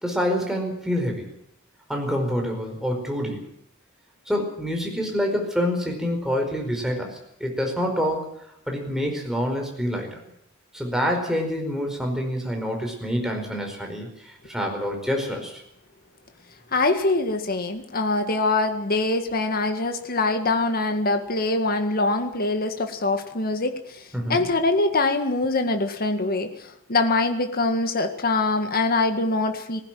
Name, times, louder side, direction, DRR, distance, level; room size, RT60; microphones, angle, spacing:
voice 1, 0.0-1.3 1.9-3.4 4.3-8.3 8.7-10.2 10.7-14.1 14.5-15.6 24.1-24.4, equal, ahead, 2 dB, 4.9 m, -26 dB
voice 2, 16.7-29.8, left 2 dB, 45° left, 6 dB, 1.9 m, -24 dB
20.0 x 15.5 x 9.3 m, 0.74 s
head